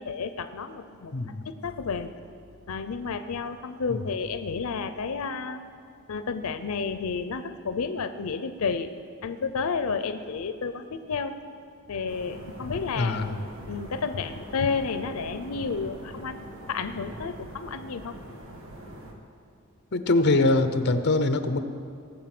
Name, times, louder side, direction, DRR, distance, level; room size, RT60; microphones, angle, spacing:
voice 1, 0.0-1.1 1.5-2.1 2.7-5.6 6.1-8.9 9.2-11.4 11.9-13.2 13.7-16.4 16.7-18.2, left 5 dB, 90° left, 10 dB, 0.5 m, -31 dB
voice 2, 1.1-1.4 3.9-4.0 13.0-13.3 19.9-21.6, left 2 dB, 55° left, 9 dB, 0.8 m, -23 dB
sound 1, 12.1-19.1, right 1 dB, 65° right, 1.6 m, -43 dB
19.0 x 7.4 x 6.0 m, 2.4 s
head